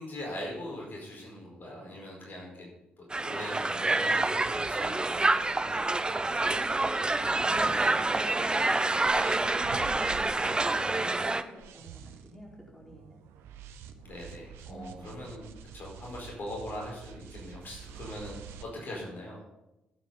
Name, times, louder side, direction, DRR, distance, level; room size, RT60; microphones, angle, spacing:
voice 1, 0.0-2.7 3.0-6.1 10.6-11.2 14.0-15.5 15.7-19.4, left 1 dB, 45° left, -2 dB, 4.8 m, -42 dB
Crowd, 3.1-11.4, right 2 dB, 20° right, 0.7 m, -27 dB
sound 1, 4.4-8.5 8.9-18.7, right 7 dB, 65° right, 0.7 m, -48 dB
voice 2, 6.4-9.7 10.1-13.2 14.7-15.2, equal, 5° left, -3 dB, 4.5 m, -48 dB
17.5 x 9.1 x 4.1 m, 0.94 s
figure-of-eight pair, 40°, 4 cm